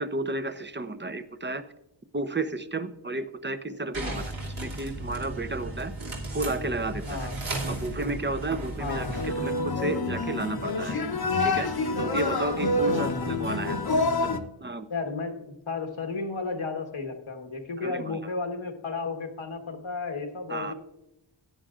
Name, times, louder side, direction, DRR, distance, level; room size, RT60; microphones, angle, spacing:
voice 1, 0.0-1.6 2.1-4.2 4.6-5.9 6.3-7.3 7.7-11.0 11.4-11.7 12.0-13.8 14.2-14.9 17.8-18.2 20.5-20.7, right 2 dB, 25° right, 11 dB, 0.8 m, -32 dB
sound 1, 3.9-9.3, right 2 dB, 75° right, 2.8 m, -35 dB
voice 2, 4.0-4.3 7.1-7.3 8.8-9.1 12.9-13.2 14.9-20.7, left 4 dB, 85° left, 3 dB, 1.5 m, -33 dB
sound 2, 8.9-14.4, left 2 dB, 50° left, 1.0 m, -27 dB
16.0 x 9.7 x 2.5 m, 0.85 s
wide cardioid pair, 65°, 48 cm